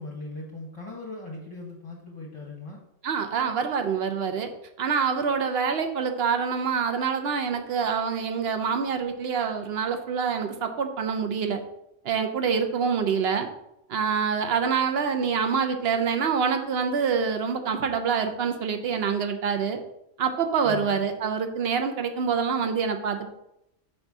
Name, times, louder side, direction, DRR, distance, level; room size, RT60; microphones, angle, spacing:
voice 1, 0.0-2.8 20.6-21.0, left 2 dB, 25° left, -2 dB, 1.0 m, -39 dB
voice 2, 3.0-4.5 4.8-11.6 12.0-13.5 13.9-19.8 20.2-23.3, right 6 dB, 55° right, 6 dB, 0.9 m, -26 dB
5.3 x 4.1 x 6.1 m, 0.82 s
omnidirectional pair, 1.4 m